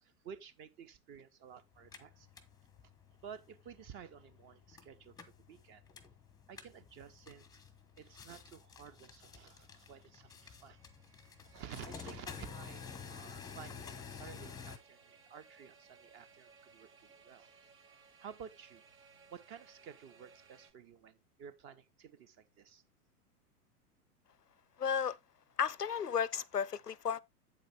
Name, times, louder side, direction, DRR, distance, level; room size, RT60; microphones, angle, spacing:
voice 1, 0.0-2.3 3.2-5.1 5.5-5.8 6.5-7.6 8.0-10.8 11.4-17.6 18.2-18.8 19.3-22.8, right 7 dB, 25° right, 0.9 m, -53 dB
sound 1, 1.7-14.8, left 6 dB, 10° left, 0.9 m, -51 dB
sound 2, 9.4-20.7, right 5 dB, 60° right, 2.6 m, -63 dB
voice 2, 24.8-25.2 25.6-27.2, left 7 dB, 90° left, 0.6 m, -33 dB
8.5 x 7.7 x 3.3 m
figure-of-eight pair, 100°, 46 cm